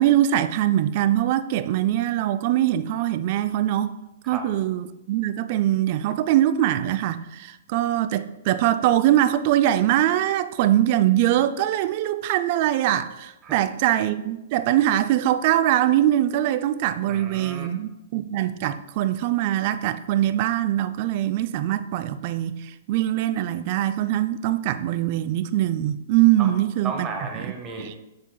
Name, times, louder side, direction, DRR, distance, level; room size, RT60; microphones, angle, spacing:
voice 1, 0.0-4.0 4.3-27.1 27.8-27.9, right 12 dB, 50° right, 0.4 m, -22 dB
voice 2, 17.1-17.7 26.4-26.5 26.8-28.0, right 4 dB, 25° right, 1.0 m, -34 dB
7.5 x 7.3 x 2.3 m
hypercardioid pair, 120°, 0 cm